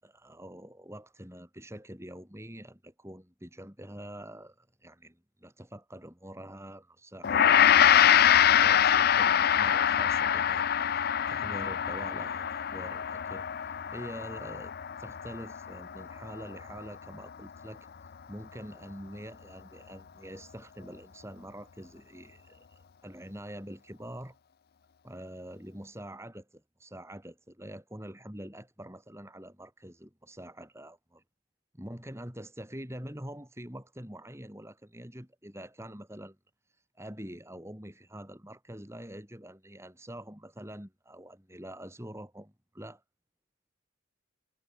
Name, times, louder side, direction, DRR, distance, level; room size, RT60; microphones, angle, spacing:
voice 1, 0.0-14.7 15.0-17.9 18.3-24.4 25.0-31.0 31.7-36.4 36.9-43.0, equal, 15° right, 6.0 m, -45 dB
Gong, 7.2-16.6, left 9 dB, 45° left, 0.4 m, -24 dB
head